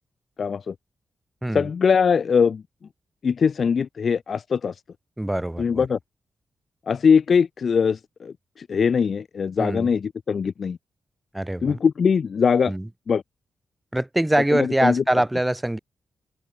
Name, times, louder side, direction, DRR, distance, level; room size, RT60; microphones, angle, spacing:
voice 1, 0.4-0.7 1.5-2.6 3.2-4.8 5.6-6.0 6.9-10.8 11.6-12.7 13.1-13.2 14.5-15.0, left 6 dB, 55° left, 1.3 m, -21 dB
voice 2, 5.2-5.9 9.6-9.9 11.3-11.8 12.7-12.9 13.9-15.8, right 1 dB, 10° right, 2.0 m, -23 dB
open air
wide cardioid pair, 125°, 0 cm